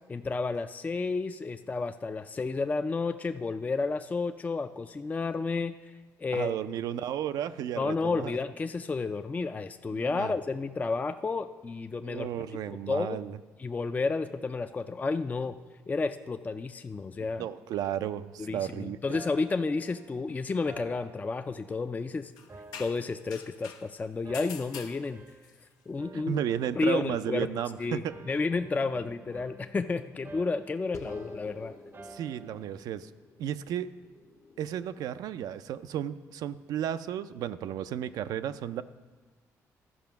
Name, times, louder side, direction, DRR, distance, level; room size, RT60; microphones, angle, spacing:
voice 1, 0.1-5.9 6.2-6.6 7.8-13.2 13.6-15.6 15.9-17.5 18.4-22.3 22.8-25.2 25.9-26.4 26.8-27.5 27.8-31.7, left 4 dB, 25° left, 9 dB, 0.4 m, -31 dB
voice 2, 6.3-8.3 9.9-10.3 12.0-13.4 17.4-19.2 26.1-28.1 32.1-33.1 33.4-33.9 34.6-38.8, right 10 dB, 75° right, 11 dB, 0.4 m, -33 dB
sound 1, 19.1-22.0 22.5-23.8 24.3-25.6 26.0-27.7 28.1-32.8, right 3 dB, 35° right, 0.6 m, -50 dB
sound 2, 22.4-23.9 24.3-25.5, left 7 dB, 90° left, 0.7 m, -45 dB
sound 3, 30.9-35.7, left 3 dB, 45° left, 0.9 m, -48 dB
12.5 x 5.1 x 5.8 m, 1.3 s
cardioid pair, 75°, 7 cm